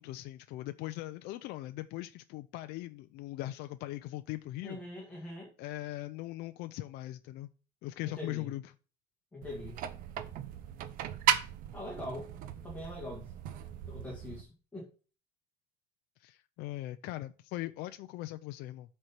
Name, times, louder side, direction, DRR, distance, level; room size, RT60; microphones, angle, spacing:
voice 1, 0.0-4.8 5.2-5.3 5.6-7.5 7.8-8.7 16.2-18.9, left 16 dB, 55° left, 0.5 m, -40 dB
voice 2, 4.6-5.5 8.0-8.5 9.3-9.8 11.7-12.3 12.6-13.3 13.9-14.9, left 1 dB, 10° left, 2.1 m, -42 dB
sound 1, 9.4-14.4, right 11 dB, 45° right, 0.8 m, -36 dB
8.0 x 4.3 x 5.9 m
cardioid pair, 170°, 20 cm